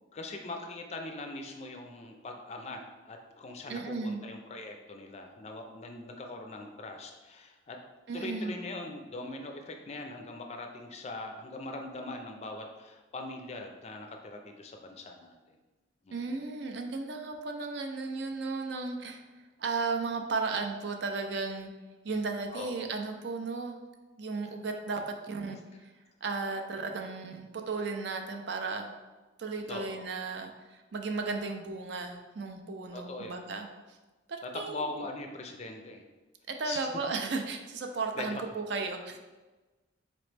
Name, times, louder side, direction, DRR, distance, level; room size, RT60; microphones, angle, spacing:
voice 1, 0.0-7.8 8.1-15.4 16.0-16.2 22.5-22.9 29.7-30.1 32.9-33.4 34.4-36.0 36.6-36.8 38.2-38.4, left 2 dB, 35° left, 3 dB, 0.4 m, -41 dB
voice 2, 3.7-4.2 8.1-8.5 16.1-19.2 19.6-21.7 22.0-23.8 24.2-25.9 26.2-28.9 29.4-33.7 34.3-34.9 36.5-39.2, right 4 dB, 60° right, 4 dB, 0.4 m, -35 dB
4.1 x 3.0 x 3.3 m, 1.2 s
head